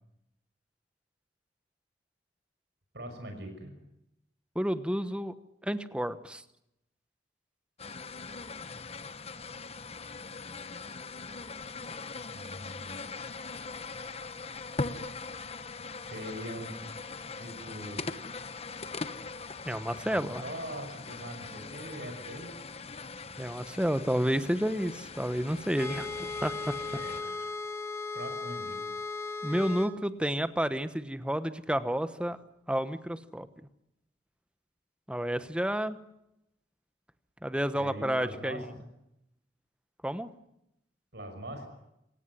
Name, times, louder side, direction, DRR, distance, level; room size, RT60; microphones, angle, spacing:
voice 1, 2.9-3.7 12.3-13.0 16.0-16.7 17.4-18.2 20.0-22.5 26.9-27.3 28.1-28.8 37.7-38.7 41.1-41.7, right 1 dB, 65° right, 5 dB, 6.0 m, -42 dB
voice 2, 4.5-5.3 5.6-6.4 19.6-20.4 23.4-26.8 29.4-32.4 32.7-33.5 35.1-36.0 37.4-38.6 40.0-40.3, equal, 5° right, 12 dB, 1.1 m, -30 dB
sound 1, 7.8-27.2, left 4 dB, 35° left, 1.1 m, -41 dB
sound 2, 25.7-29.9, left 3 dB, 15° left, 1.8 m, -37 dB
27.0 x 17.5 x 9.8 m, 0.83 s
head